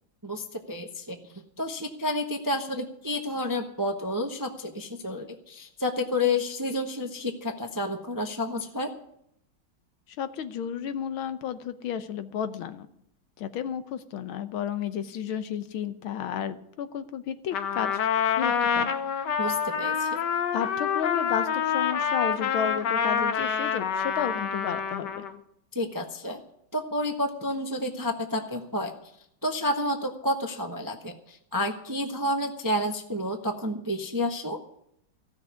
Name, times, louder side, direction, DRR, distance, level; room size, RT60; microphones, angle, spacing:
voice 1, 0.2-8.9 19.4-20.2 25.7-26.4 26.7-28.9 29.4-34.6, left 1 dB, 15° right, 5 dB, 0.6 m, -30 dB
voice 2, 10.2-12.9 13.4-18.0 18.3-18.9 20.5-25.3, left 8 dB, 80° left, 11 dB, 1.7 m, -32 dB
Trumpet, 17.5-25.4, left 7 dB, 60° left, 1.5 m, -27 dB
15.5 x 6.6 x 9.3 m, 0.74 s
omnidirectional pair, 2.3 m